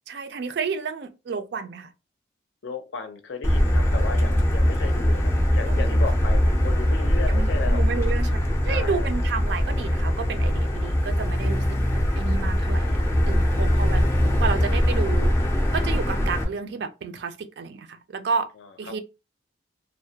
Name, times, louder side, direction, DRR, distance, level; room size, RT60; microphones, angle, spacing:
voice 1, 0.1-1.9 5.7-6.0 7.3-11.8 12.2-14.1 14.4-15.3 15.7-18.5 18.8-19.0, right 5 dB, 60° right, 0.3 m, -31 dB
voice 2, 2.6-7.8 8.6-9.1 13.2-13.7 18.5-18.9, left 4 dB, 75° left, 0.5 m, -35 dB
Motor vehicle (road), 3.4-16.4, equal, 15° left, 0.4 m, -22 dB
2.2 x 2.1 x 2.7 m
head